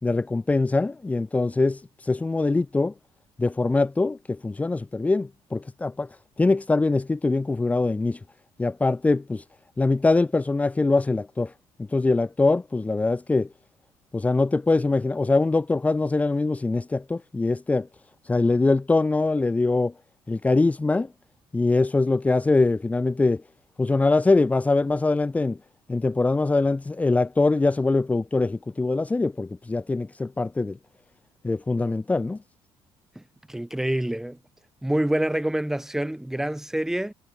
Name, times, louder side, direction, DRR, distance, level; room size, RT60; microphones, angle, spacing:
voice 1, 0.0-2.9 3.4-6.1 6.4-8.2 8.6-9.4 9.8-11.5 11.9-13.5 14.1-17.9 18.2-19.9 20.3-21.1 21.5-23.4 23.8-25.6 25.9-30.8 31.4-32.4, left 3 dB, 15° left, 2.7 m, -23 dB
voice 2, 33.5-34.4 34.8-37.1, right 1 dB, 5° right, 4.8 m, -26 dB
cardioid pair, 140°, 10 cm